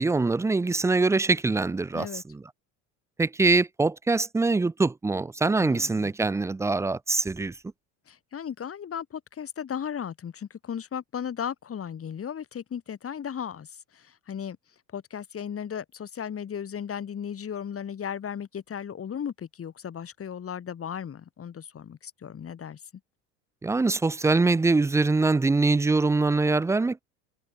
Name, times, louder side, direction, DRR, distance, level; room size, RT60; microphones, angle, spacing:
voice 1, 0.0-2.4 3.2-7.5 23.6-27.0, right 3 dB, 10° right, 0.4 m, -23 dB
voice 2, 1.9-2.2 5.6-6.1 8.1-14.6 14.9-22.8, left 8 dB, 35° left, 3.7 m, -36 dB
hypercardioid pair, 80°, 37 cm